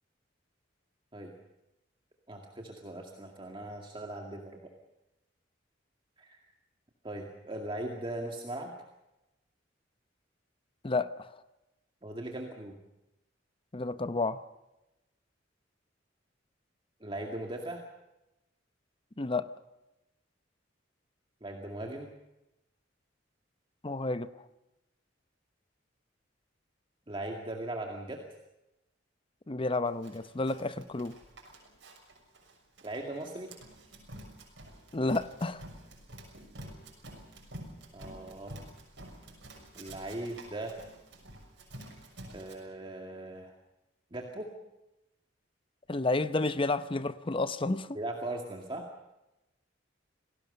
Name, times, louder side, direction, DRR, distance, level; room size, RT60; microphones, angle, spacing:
voice 1, 2.3-4.6 6.2-6.4 7.0-8.7 12.0-12.8 17.0-17.8 21.4-22.1 27.1-28.2 32.8-33.5 37.9-38.6 39.8-40.7 42.3-43.5 44.1-44.5 47.9-48.9, right 1 dB, 25° right, 1 dB, 2.2 m, -39 dB
voice 2, 10.8-11.3 13.7-14.4 19.2-19.5 23.8-24.5 29.5-31.2 34.9-35.6 45.9-47.9, left 2 dB, 25° left, 13 dB, 0.7 m, -31 dB
Run, 30.0-42.5, right 1 dB, 65° right, 6.4 m, -49 dB
27.5 x 18.5 x 6.7 m, 0.95 s
head